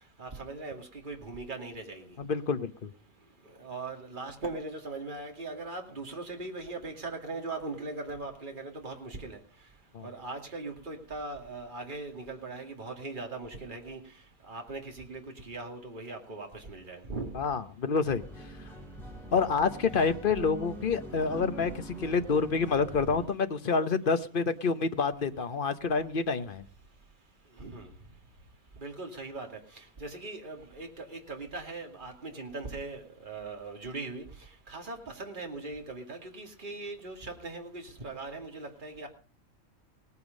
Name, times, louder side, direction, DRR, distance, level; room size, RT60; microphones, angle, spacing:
voice 1, 0.2-2.2 3.6-9.4 10.0-14.0 14.5-17.3 27.6-27.9 28.8-34.2 34.7-39.1, right 3 dB, 35° right, 2 dB, 2.5 m, -40 dB
voice 2, 2.2-2.9 9.9-10.1 17.3-18.2 19.3-26.6, left 5 dB, 45° left, 10 dB, 1.0 m, -28 dB
sound 1, 18.0-23.3, equal, ahead, 4.1 m, -43 dB
18.0 x 9.7 x 5.3 m, 0.39 s
omnidirectional pair, 1.4 m